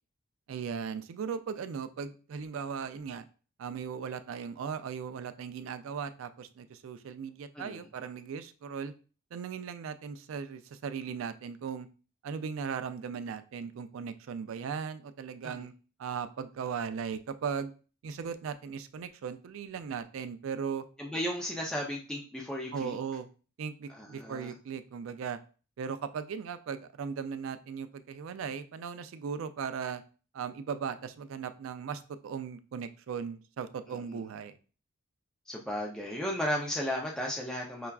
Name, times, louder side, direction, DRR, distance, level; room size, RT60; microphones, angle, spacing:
voice 1, 0.5-3.3 3.6-8.9 9.3-11.9 12.2-15.7 16.0-17.7 18.0-20.8 22.7-23.3 23.6-25.4 25.8-30.0 30.3-34.6, right 6 dB, 65° right, 11 dB, 0.3 m, -37 dB
voice 2, 7.6-7.9 15.4-15.6 21.0-22.9 24.0-24.5 34.0-34.2 35.5-37.9, equal, 5° left, -2 dB, 0.4 m, -35 dB
5.6 x 2.2 x 2.3 m, 0.37 s
head